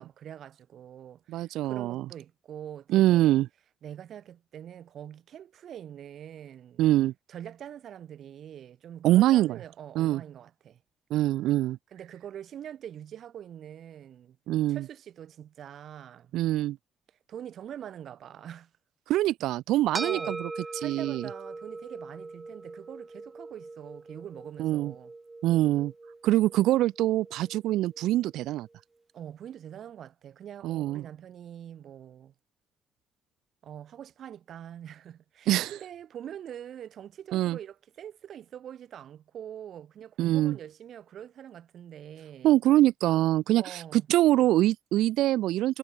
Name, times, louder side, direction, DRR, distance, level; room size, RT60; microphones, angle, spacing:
voice 1, 0.0-3.4 3.8-6.8 7.3-10.8 11.9-14.4 14.7-16.3 17.3-18.7 20.0-25.1 29.1-32.3 33.6-42.5 43.6-44.1, right 10 dB, 65° right, 2.6 m, -44 dB
voice 2, 1.3-2.0 2.9-3.5 6.8-7.1 9.0-9.6 10.0-10.2 11.1-11.8 14.5-14.8 16.3-16.8 19.1-20.5 20.7-21.3 24.6-24.9 25.4-25.9 26.2-28.7 30.6-31.0 35.5-35.7 37.3-37.6 40.2-40.6 42.4-45.8, right 15 dB, 90° right, 0.7 m, -24 dB
sound 1, 19.9-28.5, right 3 dB, 20° right, 6.9 m, -41 dB
cardioid pair, 90°, 0 cm